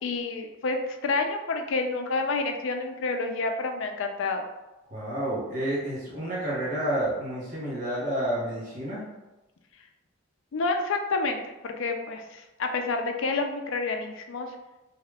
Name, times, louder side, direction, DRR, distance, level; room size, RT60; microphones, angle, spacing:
voice 1, 0.0-4.4 10.5-11.4 11.6-14.5, left 3 dB, 65° left, 5 dB, 0.4 m, -29 dB
voice 2, 4.9-9.0, right 1 dB, 40° right, -7 dB, 1.1 m, -30 dB
2.7 x 2.3 x 3.3 m, 1.0 s
head